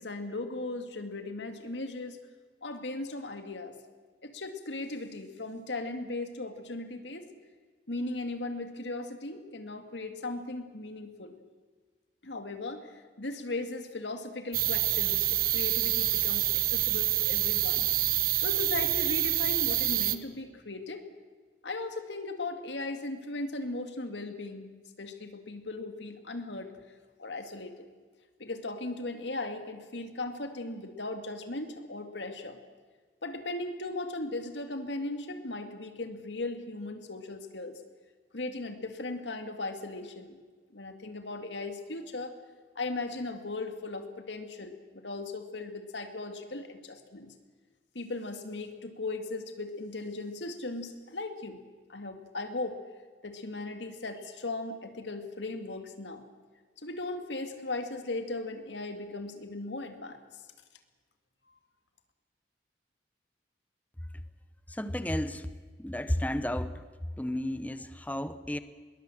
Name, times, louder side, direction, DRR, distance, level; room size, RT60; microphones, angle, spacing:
voice 1, 0.0-2.2 2.6-3.7 4.2-7.3 7.9-11.4 12.2-17.9 18.4-21.0 21.6-26.8 27.2-27.9 28.4-32.6 33.2-37.8 38.3-40.4 40.7-42.3 42.8-47.3 47.9-51.6 51.9-52.8 53.2-56.2 56.8-60.4, left 2 dB, 85° left, 7 dB, 2.0 m, -37 dB
sound 1, 14.5-20.1, right 14 dB, 50° right, 1.1 m, -27 dB
voice 2, 64.7-65.5 65.8-66.8 67.2-68.6, left 1 dB, 10° left, 12 dB, 0.8 m, -32 dB
21.5 x 19.5 x 7.7 m, 1.5 s
head